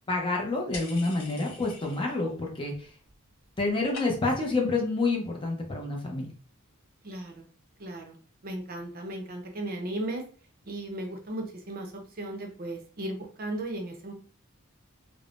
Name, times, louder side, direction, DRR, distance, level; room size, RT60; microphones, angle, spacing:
voice 1, 0.1-2.7 3.6-6.3, left 3 dB, 25° left, 1 dB, 0.6 m, -28 dB
sound 1, 0.7-2.3 2.6-3.2 3.4-4.5, left 3 dB, 75° left, 1.3 m, -44 dB
voice 2, 7.0-7.4 7.8-8.2 8.4-10.2 10.6-14.1, right 1 dB, 45° right, 3 dB, 0.6 m, -36 dB
3.4 x 2.0 x 2.4 m, 0.40 s
head